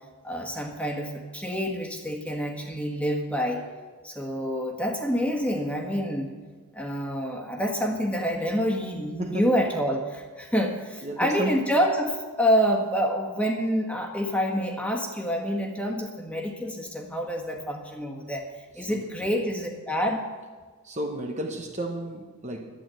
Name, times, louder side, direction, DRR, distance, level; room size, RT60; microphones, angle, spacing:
voice 1, 0.2-3.6 4.0-6.3 6.7-18.4 18.7-20.2, equal, 5° left, 1.6 m, -27 dB
voice 2, 9.2-9.6 11.0-11.7 18.8-19.1 20.8-22.7, right 1 dB, 30° right, 0.9 m, -33 dB
12.0 x 10.0 x 7.7 m
head